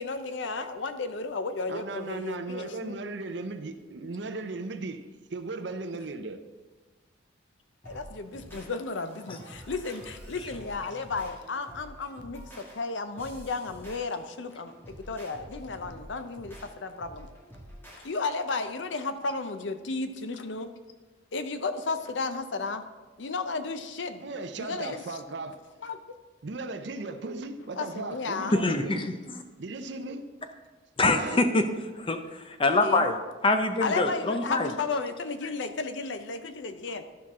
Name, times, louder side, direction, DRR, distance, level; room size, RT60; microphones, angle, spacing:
voice 1, 0.0-2.9 7.8-17.3 18.0-20.7 21.3-22.8 23.2-24.3 24.6-25.0 25.8-26.0 27.8-28.6 32.6-33.1 33.8-37.0, left 4 dB, 70° left, 10 dB, 0.6 m, -33 dB
voice 2, 1.7-5.0 5.3-6.4 24.2-25.6 26.4-29.1 29.6-30.3 31.1-31.4, right 3 dB, 65° right, 8 dB, 0.6 m, -36 dB
sound 1, 7.8-18.1, equal, 10° left, 1.9 m, -48 dB
voice 3, 28.5-29.4 31.0-31.6 32.0-33.1 33.4-34.7, left 2 dB, 25° left, 7 dB, 0.6 m, -25 dB
12.0 x 5.8 x 3.7 m, 1.3 s
head